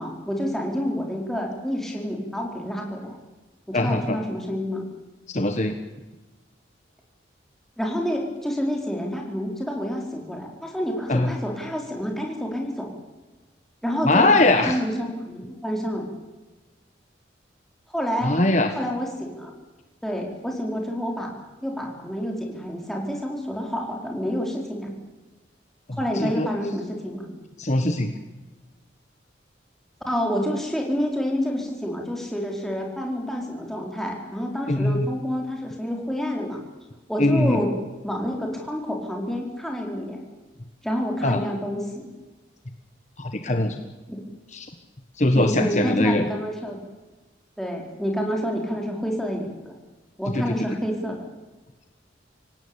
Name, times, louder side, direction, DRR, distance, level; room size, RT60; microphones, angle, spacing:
voice 1, 0.0-3.2 3.7-4.8 7.8-12.9 13.8-14.3 14.7-16.0 17.9-18.4 18.8-19.5 20.0-21.3 21.6-24.9 25.9-27.3 30.1-36.6 37.1-37.7 38.0-40.2 40.8-42.1 44.1-44.2 45.3-46.8 47.6-49.7 50.2-51.2, equal, ahead, 0 dB, 4.3 m, -28 dB
voice 2, 3.7-4.2 5.3-5.7 11.1-11.3 14.0-14.8 18.2-18.7 25.9-26.5 27.6-28.1 34.7-35.1 37.2-37.6 41.2-41.4 43.2-43.8 44.5-44.7 45.2-46.2 50.3-50.5, left 2 dB, 40° left, 6 dB, 1.4 m, -21 dB
25.5 x 17.5 x 8.8 m, 1.2 s
head